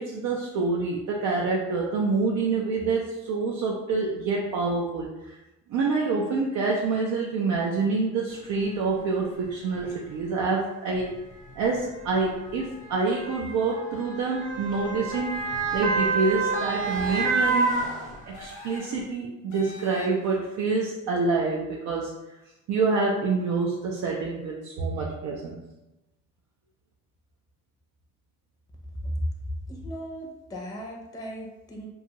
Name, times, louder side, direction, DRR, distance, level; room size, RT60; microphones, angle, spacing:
voice 1, 0.0-5.4 5.7-11.2 11.6-17.8 18.3-22.1 22.7-25.6, right 4 dB, 80° right, -2 dB, 0.5 m, -27 dB
Motor vehicle (road) / Siren, 8.6-8.7 9.7-9.9 11.0-18.6 19.0-19.1, right 4 dB, 25° right, 0.7 m, -29 dB
sound 1, 16.9-17.5 18.3-19.0 19.5-20.4, left 2 dB, 80° left, 0.8 m, -44 dB
voice 2, 29.7-31.9, equal, 15° left, 0 dB, 0.5 m, -38 dB
2.6 x 2.3 x 2.9 m, 0.99 s
cardioid pair, 90°, 30 cm